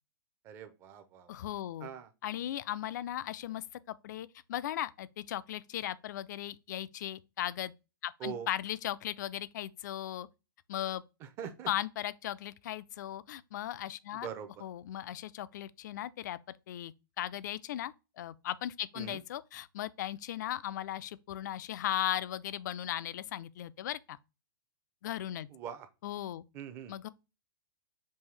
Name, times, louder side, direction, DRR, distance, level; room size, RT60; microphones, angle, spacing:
voice 1, 0.4-1.3 1.8-2.1 8.2-8.5 11.2-11.7 14.1-14.5 18.9-19.2 25.5-25.9 26.5-26.9, right 8 dB, 20° right, 0.6 m, -42 dB
voice 2, 1.3-1.9 2.2-7.7 8.0-10.3 10.7-11.0 11.7-14.3 14.6-16.4 16.7-24.2 25.0-25.5 26.0-26.4 26.9-27.1, left 12 dB, 55° left, 0.4 m, -37 dB
5.4 x 2.7 x 3.2 m
hypercardioid pair, 160°, 11 cm